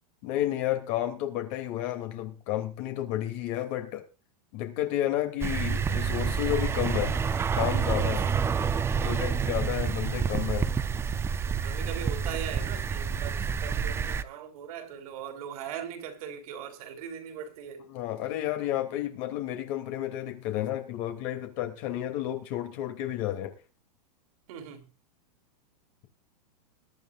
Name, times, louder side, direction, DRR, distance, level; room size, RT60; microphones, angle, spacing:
voice 1, 0.2-4.0 4.5-7.2 7.5-8.3 9.0-10.7 17.9-23.5, left 13 dB, 45° left, 2.9 m, -31 dB
sound 1, 5.4-14.2, right 6 dB, 10° right, 0.6 m, -28 dB
voice 2, 8.0-8.4 9.0-9.4 11.5-17.9 24.5-24.9, right 8 dB, 60° right, 3.7 m, -40 dB
21.5 x 11.0 x 2.5 m
supercardioid pair, 145°, 21 cm